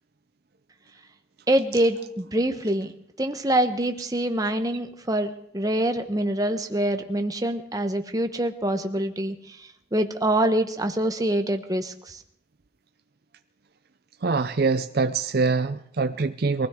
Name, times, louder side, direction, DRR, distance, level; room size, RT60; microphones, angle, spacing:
voice 1, 1.5-2.9 3.2-12.2, right 1 dB, 20° right, 6 dB, 1.0 m, -25 dB
voice 2, 14.2-16.7, right 4 dB, 55° right, 10 dB, 0.6 m, -24 dB
23.0 x 16.0 x 3.7 m, 0.70 s
head